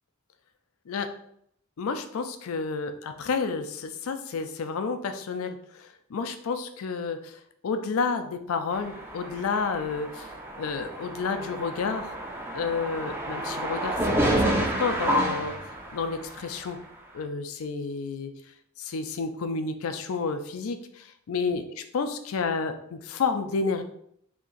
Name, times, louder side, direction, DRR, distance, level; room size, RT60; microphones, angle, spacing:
voice 1, 1.8-12.2 12.5-15.5 15.9-16.8 17.1-18.3 18.8-21.6 21.9-23.8, left 4 dB, 70° left, 8 dB, 0.4 m, -30 dB
sound 1, 8.7-16.4, right 1 dB, 10° right, 0.4 m, -29 dB
2.8 x 2.5 x 3.8 m, 0.70 s
head